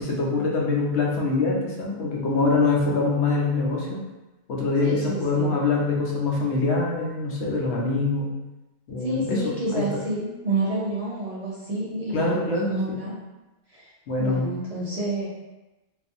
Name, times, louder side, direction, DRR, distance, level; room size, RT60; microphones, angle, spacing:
voice 1, 0.0-4.0 4.5-8.3 8.9-9.4 9.7-9.9 12.1-13.0 14.1-14.5, left 3 dB, 85° left, -3 dB, 0.9 m, -24 dB
voice 2, 4.8-5.6 9.0-13.2 13.7-13.9 14.2-15.3, right 2 dB, 50° right, -6 dB, 0.4 m, -29 dB
2.5 x 2.4 x 2.5 m, 1.1 s
omnidirectional pair, 1.1 m